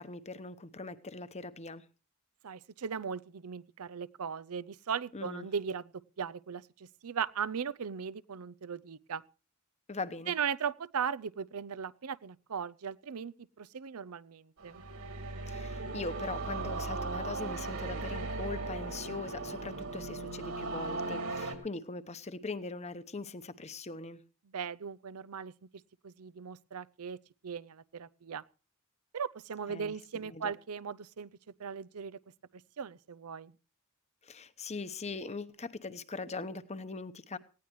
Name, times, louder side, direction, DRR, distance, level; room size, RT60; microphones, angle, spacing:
voice 1, 0.0-1.8 5.1-5.5 9.9-10.3 15.5-24.2 29.7-29.9 30.2-30.5 34.2-37.4, left 3 dB, 30° left, 1.0 m, -41 dB
voice 2, 2.4-5.9 6.2-9.2 10.3-14.8 24.5-25.5 26.0-27.2 27.4-28.4 29.1-31.3 31.6-32.2 32.8-33.5, right 7 dB, 85° right, 0.6 m, -38 dB
sound 1, 14.6-21.6, right 3 dB, 70° right, 3.1 m, -37 dB
19.0 x 16.0 x 3.1 m
head